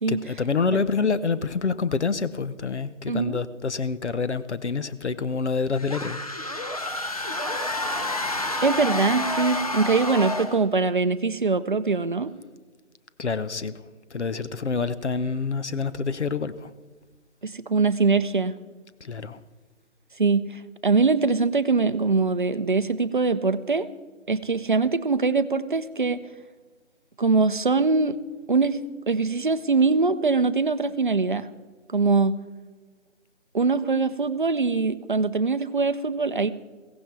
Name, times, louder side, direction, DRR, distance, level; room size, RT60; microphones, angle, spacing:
voice 1, 0.1-6.2 13.2-13.8 14.1-16.7 19.0-19.4, left 4 dB, 60° left, 0.9 m, -27 dB
voice 2, 3.1-3.4 8.6-12.3 17.4-18.5 20.2-23.9 24.3-26.2 27.2-28.2 28.5-28.8 29.1-31.5 31.9-32.3 33.5-36.5, right 4 dB, 40° right, 0.6 m, -22 dB
sound 1, 5.7-10.7, left 2 dB, 30° left, 0.7 m, -29 dB
16.0 x 15.0 x 4.7 m
figure-of-eight pair, 160°, 38 cm